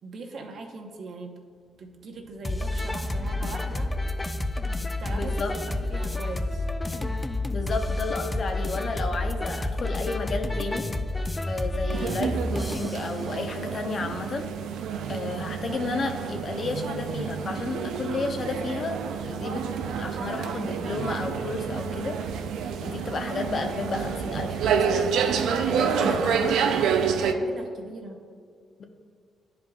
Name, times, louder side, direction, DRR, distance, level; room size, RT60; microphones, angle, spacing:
voice 1, 0.0-1.4 1.8-3.9 5.0-5.4 5.7-6.7 27.3-28.3, right 3 dB, 65° right, 2 dB, 0.9 m, -40 dB
sound 1, 1.7-5.2, right 1 dB, 15° right, 0.8 m, -47 dB
sound 2, 2.4-13.0, left 2 dB, 20° left, 0.4 m, -29 dB
voice 2, 5.1-5.5 7.5-10.9 11.5-14.4 15.1-19.0 19.2-22.2 22.8-25.3 25.6-26.5 28.8-28.9, left 3 dB, 50° left, 4 dB, 0.8 m, -32 dB
sound 3, 11.9-27.3, right 7 dB, 85° right, 0.4 m, -28 dB
10.5 x 5.1 x 2.3 m, 2.1 s
cardioid pair, 80°, 0 cm